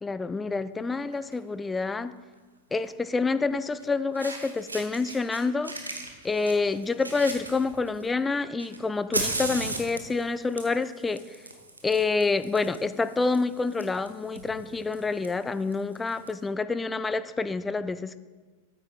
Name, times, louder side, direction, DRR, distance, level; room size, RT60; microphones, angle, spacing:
voice 1, 0.0-2.1 2.7-5.7 6.2-11.2 11.8-18.2, left 4 dB, 10° left, 14 dB, 0.3 m, -27 dB
Fire, 1.1-1.3 2.8-2.9 3.8-3.9 4.1-5.4 5.6-8.1 8.6-16.3, right 2 dB, 80° right, 1.1 m, -37 dB
13.0 x 9.3 x 2.3 m, 1.4 s
figure-of-eight pair, 90°, 0 cm